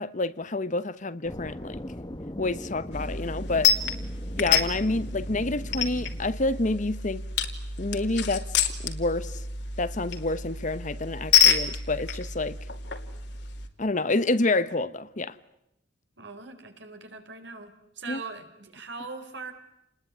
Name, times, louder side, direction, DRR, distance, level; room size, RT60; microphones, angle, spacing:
voice 1, 0.0-1.8 2.4-3.7 4.4-7.2 7.8-8.5 8.8-9.4 9.8-12.6 13.8-15.3 18.1-18.2, left 2 dB, 40° left, 1.0 m, -28 dB
sound 1, 1.2-6.3, left 1 dB, 25° left, 1.2 m, -40 dB
sound 2, 2.9-13.7, left 7 dB, 65° left, 2.6 m, -28 dB
voice 2, 16.2-19.5, right 4 dB, 70° right, 4.3 m, -41 dB
29.0 x 20.5 x 9.7 m
head